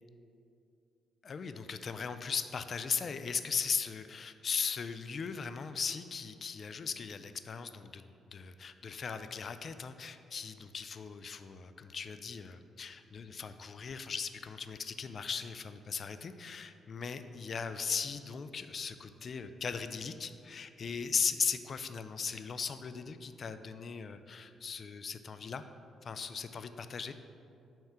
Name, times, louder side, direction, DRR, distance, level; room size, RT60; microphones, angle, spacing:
voice 1, 1.2-8.1 8.3-25.6 26.0-27.1, left 6 dB, 45° left, 10 dB, 0.3 m, -38 dB
5.5 x 3.6 x 5.7 m, 2.6 s
cardioid pair, 90°, 0 cm